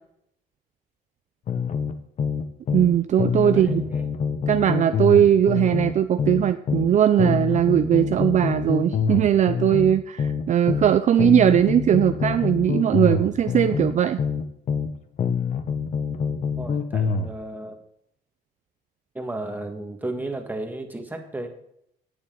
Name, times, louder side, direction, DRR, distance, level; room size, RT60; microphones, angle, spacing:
sound 1, 1.5-2.9 3.2-6.9 7.2-10.9 11.2-14.9 15.2-17.3, left 6 dB, 45° left, 1.1 m, -26 dB
voice 1, 2.7-3.8 4.5-14.2, right 10 dB, 45° right, 10 dB, 0.5 m, -19 dB
voice 2, 3.4-4.0 16.6-17.8 19.1-21.5, right 2 dB, 10° right, 4 dB, 1.8 m, -34 dB
17.5 x 7.0 x 3.9 m, 0.74 s
cardioid pair, 110°, 17 cm